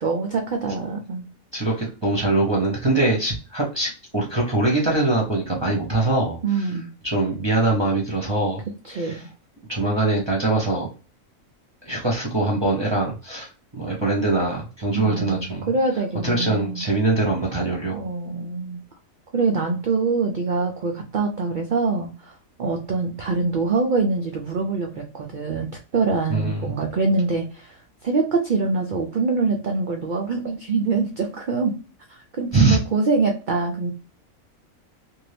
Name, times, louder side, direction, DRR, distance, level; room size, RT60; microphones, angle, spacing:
voice 1, 0.0-1.3 6.4-6.9 8.8-9.3 14.9-16.9 17.9-18.8 19.3-31.7 32.1-33.9, right 4 dB, 70° right, 2 dB, 0.4 m, -24 dB
voice 2, 1.5-6.7 7.0-8.6 8.9-9.2 9.7-10.9 11.8-15.7 16.2-18.0 26.3-26.7 32.5-32.8, right 2 dB, 25° right, -2 dB, 0.6 m, -23 dB
2.7 x 2.6 x 3.2 m, 0.35 s
omnidirectional pair, 1.4 m